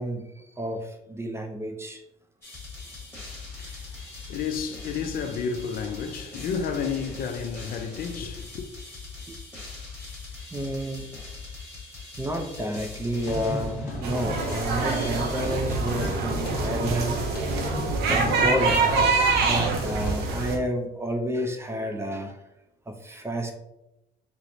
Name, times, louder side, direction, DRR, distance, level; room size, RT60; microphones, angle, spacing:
voice 1, 0.0-2.0 3.6-3.8 9.3-9.4 10.5-11.1 12.2-17.7 18.1-19.0 19.4-22.4 22.9-23.5, right 1 dB, 15° right, 0.4 m, -30 dB
sound 1, 2.4-14.3, left 3 dB, 15° left, 1.1 m, -41 dB
voice 2, 3.5-8.7, left 6 dB, 60° left, 0.4 m, -31 dB
sound 2, 13.2-20.1, left 1 dB, 80° left, 0.9 m, -34 dB
sound 3, 14.0-20.6, right 4 dB, 75° right, 0.7 m, -25 dB
4.3 x 2.1 x 2.6 m
cardioid pair, 110°, 17 cm